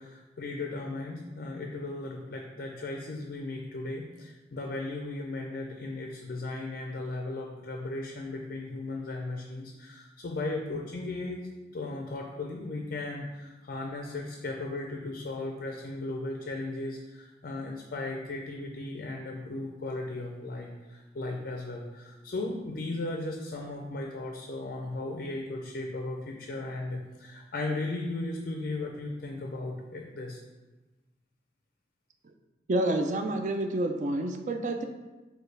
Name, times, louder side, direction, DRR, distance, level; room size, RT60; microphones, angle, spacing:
voice 1, 0.0-11.4 11.7-30.4, left 2 dB, 55° left, 1 dB, 0.4 m, -36 dB
voice 2, 32.7-34.8, right 1 dB, 40° right, 5 dB, 0.4 m, -28 dB
6.5 x 2.3 x 3.3 m, 1.2 s
head